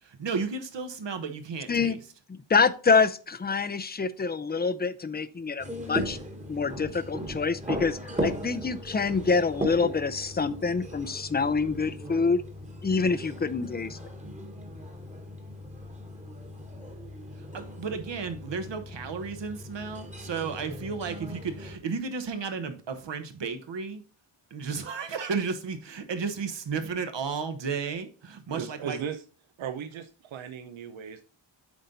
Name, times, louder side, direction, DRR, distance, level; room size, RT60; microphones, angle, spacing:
voice 1, 0.0-2.0 17.5-24.0 24.5-29.0, right 5 dB, 65° right, 1.1 m, -33 dB
voice 2, 2.5-6.2 6.5-12.4 12.8-14.0, left 4 dB, 20° left, 0.5 m, -26 dB
sound 1, 5.6-21.8, equal, 15° right, 1.3 m, -38 dB
voice 3, 28.5-29.2 29.6-31.2, right 8 dB, 80° right, 0.7 m, -37 dB
8.3 x 3.9 x 4.0 m
wide cardioid pair, 90°, 46 cm